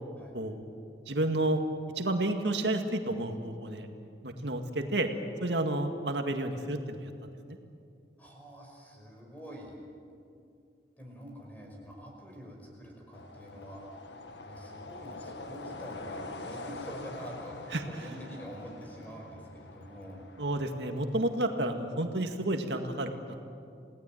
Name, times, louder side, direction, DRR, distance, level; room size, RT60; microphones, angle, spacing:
voice 1, 1.1-1.6 2.0-3.9 4.2-5.1 5.4-7.1 7.5-7.6 17.7-18.1 20.4-23.4, right 1 dB, 85° right, 5 dB, 2.0 m, -31 dB
voice 2, 8.2-9.9 11.0-20.2, equal, 10° left, 0 dB, 5.4 m, -46 dB
sound 1, 13.1-21.7, left 2 dB, 85° left, 1.6 m, -45 dB
28.5 x 18.5 x 9.3 m, 2.5 s
head